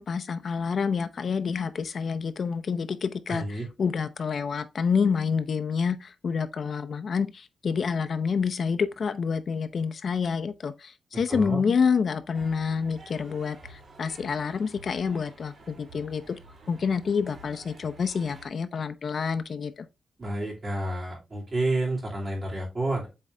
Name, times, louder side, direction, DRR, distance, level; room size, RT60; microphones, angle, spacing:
voice 1, 0.0-16.4 16.7-19.9, left 6 dB, 50° left, 0.6 m, -28 dB
voice 2, 3.3-3.6 11.3-11.6 20.2-23.1, right 2 dB, 30° right, 2.3 m, -29 dB
sound 1, 12.3-18.5, right 2 dB, 50° right, 2.7 m, -50 dB
7.6 x 3.7 x 3.3 m
wide cardioid pair, 155°, 0 cm